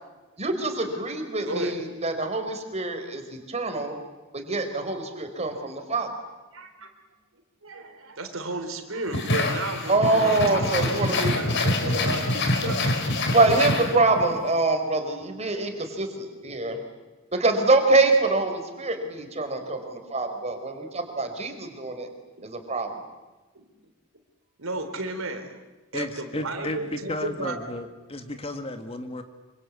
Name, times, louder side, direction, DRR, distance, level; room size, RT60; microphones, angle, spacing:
voice 1, 0.4-4.0 4.3-6.1 9.9-11.3 13.2-16.8 17.3-22.1 22.4-23.0, right 2 dB, 35° right, 5 dB, 4.3 m, -25 dB
voice 2, 1.4-1.8 6.5-6.9 7.6-13.1 22.4-22.7 23.6-23.7 24.6-25.6 25.9-27.6, right 2 dB, 85° right, 6 dB, 3.7 m, -34 dB
sound 1, 9.1-14.3, left 2 dB, 60° left, 3.9 m, -26 dB
voice 3, 25.9-29.2, left 1 dB, 30° left, 7 dB, 2.1 m, -33 dB
26.5 x 25.0 x 8.5 m, 1.2 s
head